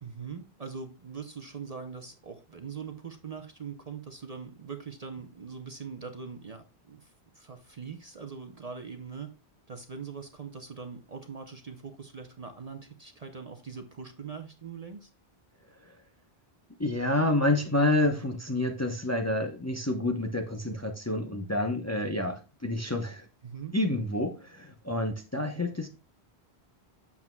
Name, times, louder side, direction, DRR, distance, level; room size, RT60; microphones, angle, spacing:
voice 1, 0.0-9.3 9.7-15.1 23.4-23.7, right 5 dB, 40° right, 6 dB, 0.7 m, -42 dB
voice 2, 16.8-23.3 23.7-25.9, left 1 dB, 15° left, 4 dB, 0.7 m, -28 dB
8.4 x 7.2 x 2.2 m, 0.32 s
omnidirectional pair, 1.1 m